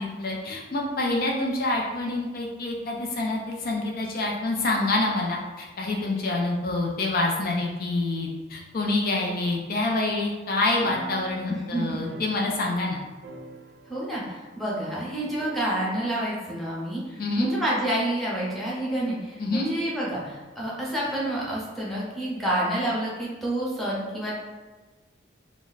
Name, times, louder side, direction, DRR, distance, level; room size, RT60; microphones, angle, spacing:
voice 1, 0.0-13.0 17.2-17.5 19.4-19.7, left 2 dB, 55° left, -1 dB, 0.4 m, -27 dB
sound 1, 10.8-12.9 13.2-14.2 14.5-14.6 15.4-16.2, right 3 dB, 70° right, 0.3 m, -45 dB
voice 2, 11.5-12.0 13.9-24.5, right 1 dB, ahead, -7 dB, 0.7 m, -29 dB
2.3 x 2.1 x 3.9 m, 1.3 s
head